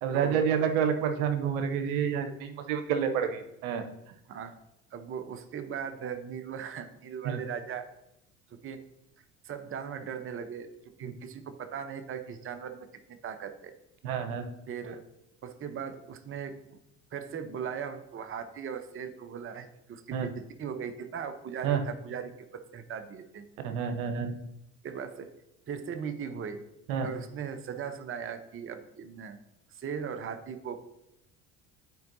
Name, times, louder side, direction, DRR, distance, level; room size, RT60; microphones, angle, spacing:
voice 1, 0.0-3.8 7.2-7.4 11.0-11.1 14.0-14.5 20.1-20.3 21.6-21.8 23.6-24.4 26.9-27.1, right 7 dB, 75° right, 7 dB, 0.9 m, -29 dB
voice 2, 4.9-7.9 8.5-8.9 9.4-10.7 11.0-13.7 14.7-15.0 15.4-16.8 17.1-23.4 24.8-25.3 25.7-26.6 27.0-29.4 29.7-30.8, right 7 dB, 30° right, 8 dB, 0.8 m, -38 dB
9.3 x 4.5 x 2.7 m, 0.86 s
hypercardioid pair, 65°, 42 cm